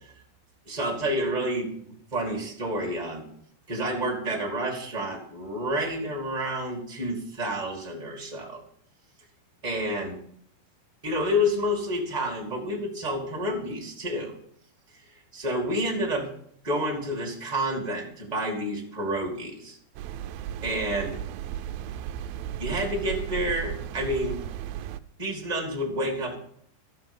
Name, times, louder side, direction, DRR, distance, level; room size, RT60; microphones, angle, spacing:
voice 1, 0.6-3.3 3.7-8.6 9.6-10.2 11.0-14.4 15.3-16.3 16.6-19.8 20.6-21.2 22.6-24.4 25.2-26.3, equal, 25° right, 0 dB, 0.9 m, -29 dB
sound 1, 20.0-25.0, right 11 dB, 85° right, 2.1 m, -35 dB
13.0 x 7.6 x 5.3 m, 0.65 s
omnidirectional pair, 4.9 m